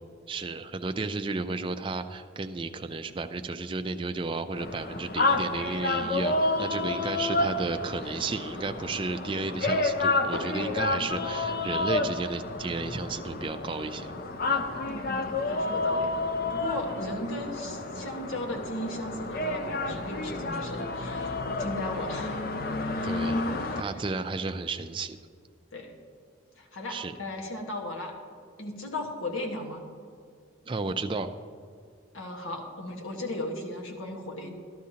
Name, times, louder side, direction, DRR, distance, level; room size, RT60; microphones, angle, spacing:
voice 1, 0.3-14.1 23.0-25.2 26.9-27.1 30.7-31.3, right 3 dB, 25° right, 8 dB, 0.3 m, -33 dB
sound 1, 4.5-23.8, left 2 dB, 45° left, 0.5 m, -30 dB
voice 2, 14.9-16.2 16.5-22.4 22.9-23.9 25.7-25.9 26.5-28.1 28.6-29.8 32.1-34.5, left 1 dB, 75° left, 1 dB, 1.4 m, -37 dB
13.5 x 11.5 x 2.8 m, 2.1 s
head